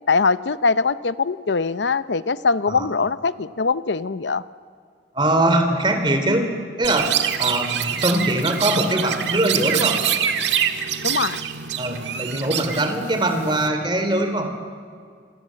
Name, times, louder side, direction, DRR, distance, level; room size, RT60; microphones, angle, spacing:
voice 1, 0.1-4.4 11.0-11.4, left 4 dB, 90° left, 15 dB, 0.7 m, -22 dB
voice 2, 5.1-6.5 6.8-7.1 7.4-9.9 11.8-14.5, right 1 dB, 25° right, 6 dB, 3.4 m, -22 dB
Chirp tweet, 6.8-13.7, right 9 dB, 85° right, 1.7 m, -25 dB
26.0 x 26.0 x 7.7 m, 2.1 s
head